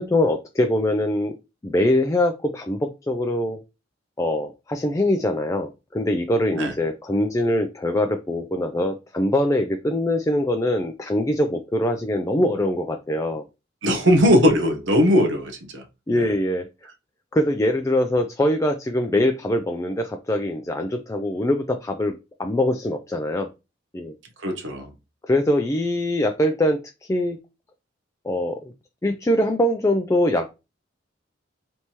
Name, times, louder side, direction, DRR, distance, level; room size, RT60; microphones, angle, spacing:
voice 1, 0.0-1.3 1.6-3.6 4.2-13.4 16.1-16.7 17.3-23.5 23.9-24.1 25.2-26.8 27.1-27.4 28.2-28.6 29.0-30.5, left 1 dB, 15° left, 0.4 m, -23 dB
voice 2, 13.8-15.8 16.1-16.3 24.4-24.9, equal, 75° right, 0.9 m, -19 dB
4.4 x 3.4 x 2.9 m
head